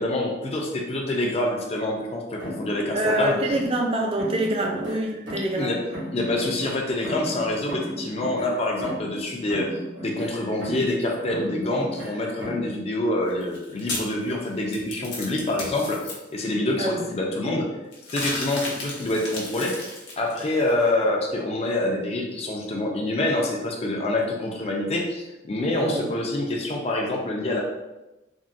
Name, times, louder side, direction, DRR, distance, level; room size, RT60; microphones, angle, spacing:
voice 1, 0.0-3.3 5.6-5.8 6.1-9.7 10.0-17.7 18.1-27.6, left 1 dB, 35° left, 0 dB, 0.5 m, -26 dB
sound 1, 2.4-3.9 4.2-5.7 5.9-9.2 9.5-11.0 11.3-12.7, equal, 90° right, 1.1 m, -36 dB
voice 2, 2.9-5.7 16.8-17.1 25.8-26.2, right 1 dB, 30° right, 2 dB, 0.4 m, -26 dB
sound 2, 13.3-16.1 17.9-20.9, left 2 dB, 80° left, 0.8 m, -34 dB
3.5 x 2.2 x 2.6 m, 1.0 s
head